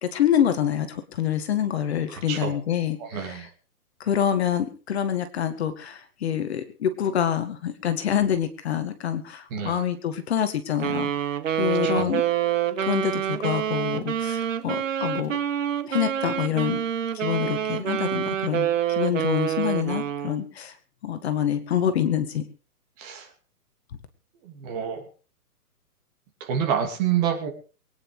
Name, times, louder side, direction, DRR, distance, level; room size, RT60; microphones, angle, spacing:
voice 1, 0.0-3.5 4.0-11.1 11.6-12.2 12.8-15.4 15.9-16.8 17.1-20.7 21.0-22.4, left 9 dB, 40° left, 9 dB, 2.0 m, -26 dB
voice 2, 3.0-3.5 9.5-9.8 11.8-12.1 23.0-23.3 24.4-25.0 26.4-27.5, right 8 dB, 25° right, 3 dB, 2.9 m, -28 dB
Wind instrument woodwind instrument, 10.8-20.4, right 10 dB, 50° right, 1.7 m, -27 dB
23.0 x 9.9 x 5.0 m, 0.37 s
hypercardioid pair, 165°, 47 cm